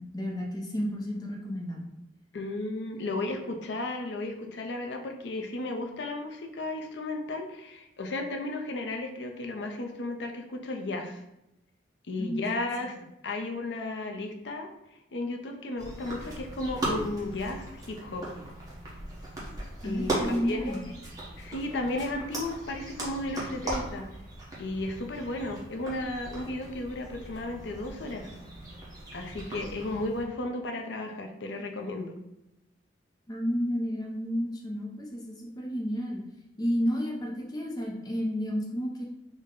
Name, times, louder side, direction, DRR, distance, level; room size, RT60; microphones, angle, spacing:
voice 1, 0.0-1.8 12.2-12.5 19.8-20.9 33.3-36.2 36.6-39.0, equal, 20° left, -1 dB, 0.5 m, -31 dB
voice 2, 2.3-11.2 12.1-12.9 13.2-14.7 15.1-18.3 19.8-20.8 21.4-24.1 24.6-28.3 29.1-32.2, left 2 dB, 70° left, 4 dB, 0.5 m, -34 dB
sound 1, 15.8-30.2, right 1 dB, 20° right, 0.9 m, -38 dB
3.7 x 2.1 x 3.7 m, 0.89 s
head